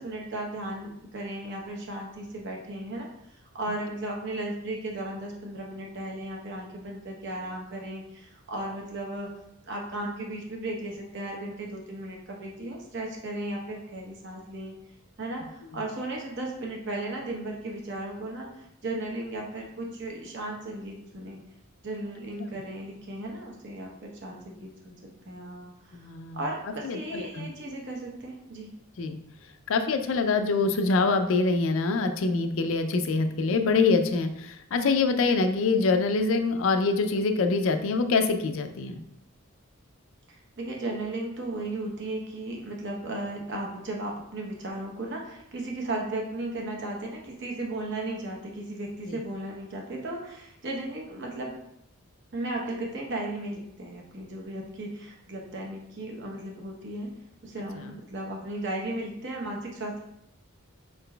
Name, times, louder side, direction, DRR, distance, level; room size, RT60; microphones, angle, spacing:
voice 1, 0.0-3.1 3.5-9.3 9.6-14.7 15.2-21.4 21.8-25.0 25.3-28.7 40.3-51.5 52.3-57.1 57.4-60.0, right 1 dB, 55° right, -1 dB, 0.9 m, -35 dB
voice 2, 25.9-26.4 26.8-27.5 29.0-29.2 29.7-39.0, left 4 dB, 65° left, 8 dB, 0.4 m, -25 dB
4.5 x 3.8 x 2.2 m, 0.77 s
head